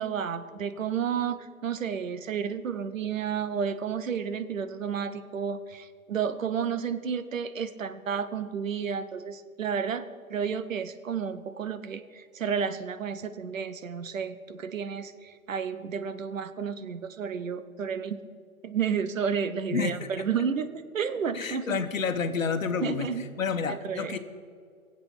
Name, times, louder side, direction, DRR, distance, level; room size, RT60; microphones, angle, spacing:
voice 1, 0.0-18.2 18.6-21.8 22.8-23.2 23.7-24.2, right 7 dB, 65° right, 11 dB, 1.1 m, -31 dB
voice 2, 19.7-20.1 21.3-23.1 23.4-24.2, left 5 dB, 65° left, 9 dB, 1.3 m, -29 dB
22.5 x 8.0 x 5.8 m, 2.1 s
figure-of-eight pair, 130°, 42 cm